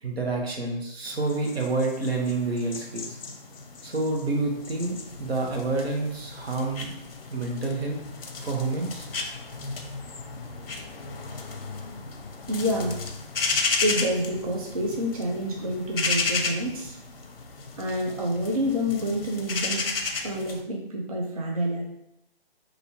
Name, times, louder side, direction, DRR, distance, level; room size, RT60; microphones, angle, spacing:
voice 1, 0.0-3.2 3.8-6.9 7.3-8.0 8.4-9.1, right 3 dB, 80° right, 1 dB, 1.1 m, -28 dB
sound 1, 1.1-20.6, left 4 dB, 65° left, 0.6 m, -34 dB
voice 2, 12.5-13.0 13.8-17.0 17.8-19.9 20.2-21.8, equal, 40° right, -1 dB, 0.4 m, -28 dB
4.2 x 2.6 x 2.8 m, 0.80 s
hypercardioid pair, 170°, 31 cm